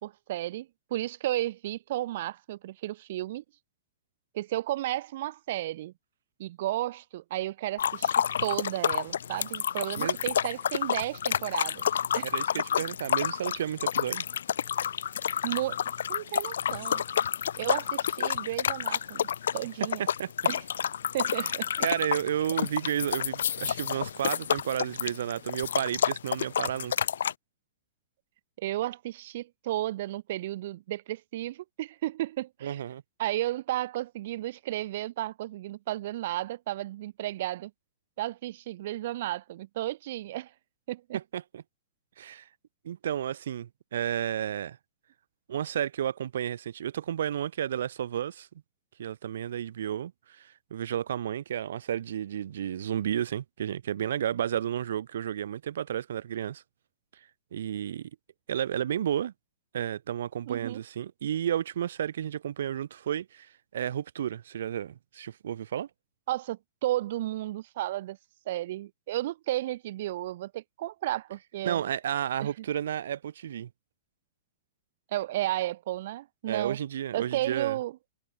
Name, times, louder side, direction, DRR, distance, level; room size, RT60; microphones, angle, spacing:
voice 1, 0.0-3.4 4.3-5.9 6.4-11.8 12.1-12.3 15.4-15.8 16.1-17.0 17.6-20.1 20.5-20.6 21.1-21.9 28.6-32.8 33.2-37.7 38.2-40.5 40.9-41.2 60.5-60.8 66.3-68.2 68.5-71.9 72.4-72.5 75.1-76.8 77.1-78.0, right 15 dB, 50° right, 0.9 m, -33 dB
sound 1, 7.8-27.3, left 8 dB, 85° left, 1.7 m, -29 dB
voice 2, 12.2-14.2 20.2-20.3 21.4-21.5 21.8-27.1 32.6-33.0 41.1-41.6 42.2-42.5 42.8-44.8 45.5-48.5 49.0-56.6 57.5-58.1 58.5-59.3 59.7-65.9 71.6-73.7 76.5-77.8, right 10 dB, 75° right, 3.5 m, -32 dB
hypercardioid pair, 160°, 0 cm